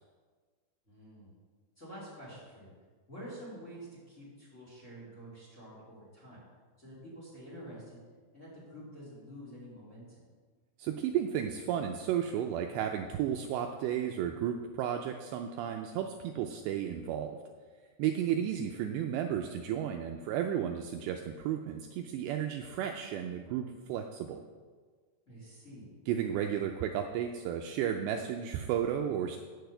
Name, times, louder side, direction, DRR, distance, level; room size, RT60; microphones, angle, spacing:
voice 1, 0.9-1.3 1.8-2.7 3.1-6.4 6.8-8.0 8.3-10.2 18.3-18.6 25.2-25.9, equal, 15° left, -6 dB, 3.4 m, -48 dB
voice 2, 10.8-17.3 18.0-24.4 26.1-29.4, right 9 dB, 80° right, 4 dB, 2.6 m, -33 dB
9.3 x 6.8 x 7.9 m, 1.5 s
omnidirectional pair, 5.4 m